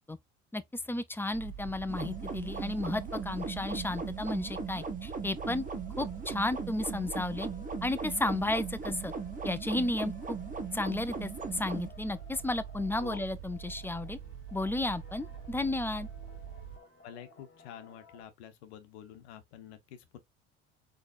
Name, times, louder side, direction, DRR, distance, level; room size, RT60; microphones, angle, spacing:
voice 1, 0.9-5.6 6.0-7.5 7.8-9.1 9.4-10.4 10.7-14.2 14.5-16.1, left 2 dB, 5° left, 0.5 m, -33 dB
sound 1, 1.3-16.8, right 9 dB, 70° right, 0.6 m, -45 dB
sound 2, 1.9-18.2, left 4 dB, 35° left, 1.9 m, -57 dB
sound 3, 1.9-11.9, right 4 dB, 25° right, 1.0 m, -39 dB
voice 2, 17.0-20.2, left 9 dB, 80° left, 0.9 m, -48 dB
4.1 x 3.2 x 2.5 m
hypercardioid pair, 70°, 32 cm